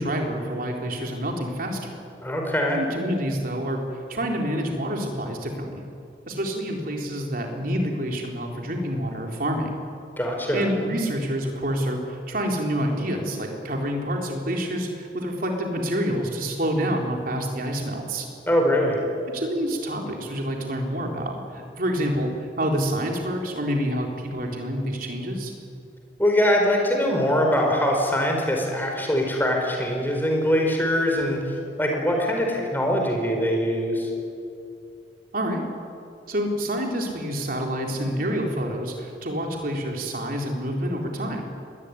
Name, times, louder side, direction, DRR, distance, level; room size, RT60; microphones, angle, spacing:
voice 1, 0.0-2.0 2.8-5.8 6.3-9.8 10.5-18.3 19.3-25.5 35.3-35.6 36.3-41.5, equal, 50° right, 1 dB, 4.0 m, -27 dB
voice 2, 2.2-2.8 10.2-10.7 18.5-19.0 26.2-34.1, equal, 10° left, 1 dB, 4.8 m, -23 dB
24.0 x 20.0 x 9.9 m, 2.6 s
head